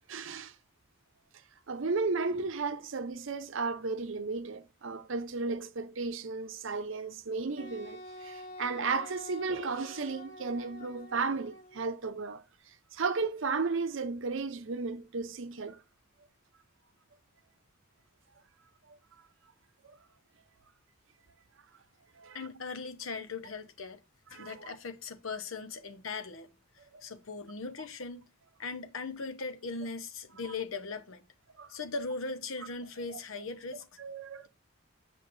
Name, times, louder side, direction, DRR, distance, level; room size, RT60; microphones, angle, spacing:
voice 1, 0.1-0.5 1.7-15.8 18.9-19.0 19.8-20.0 22.2-22.5 24.3-24.7 26.9-27.0 31.6-31.7 33.1-33.2 34.0-34.5, right 4 dB, 65° right, 0.7 m, -34 dB
Wind instrument woodwind instrument, 7.6-11.9, left 1 dB, 60° left, 1.1 m, -47 dB
voice 2, 22.3-24.0 24.3-26.5 27.0-28.2 28.6-31.3 31.7-33.9, left 4 dB, 80° left, 0.9 m, -39 dB
7.8 x 5.1 x 2.6 m
head